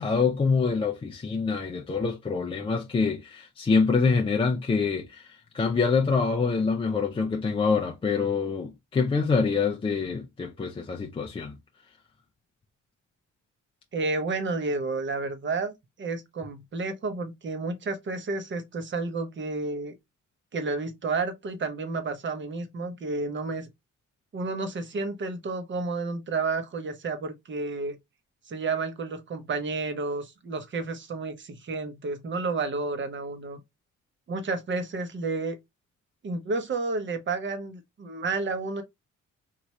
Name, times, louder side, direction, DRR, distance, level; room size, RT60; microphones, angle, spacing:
voice 1, 0.0-11.6, left 4 dB, 20° left, 0.4 m, -25 dB
voice 2, 13.9-19.9 20.5-23.7 24.3-28.0 28.5-33.6 34.3-35.6 36.2-38.8, right 3 dB, 40° right, 0.8 m, -31 dB
3.0 x 2.5 x 3.1 m
cardioid pair, 90°, 30 cm